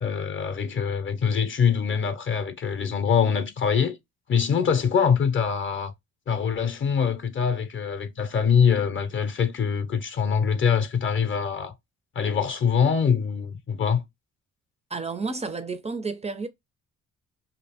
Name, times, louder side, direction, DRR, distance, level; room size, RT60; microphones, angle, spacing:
voice 1, 0.0-4.0 4.3-5.9 6.3-11.7 12.2-14.0, left 6 dB, 40° left, 0.5 m, -24 dB
voice 2, 14.9-16.5, right 4 dB, 20° right, 0.4 m, -31 dB
2.7 x 2.4 x 3.4 m
cardioid pair, 90°, 30 cm